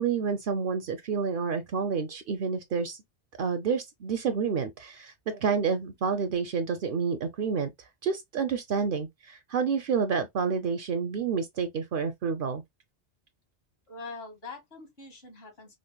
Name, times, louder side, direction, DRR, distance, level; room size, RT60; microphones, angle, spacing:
voice 1, 0.0-3.0 3.4-7.7 8.0-12.6, right 6 dB, 60° right, 0.6 m, -29 dB
voice 2, 13.9-15.8, left 3 dB, 65° left, 1.7 m, -43 dB
5.0 x 2.0 x 2.2 m
omnidirectional pair, 1.1 m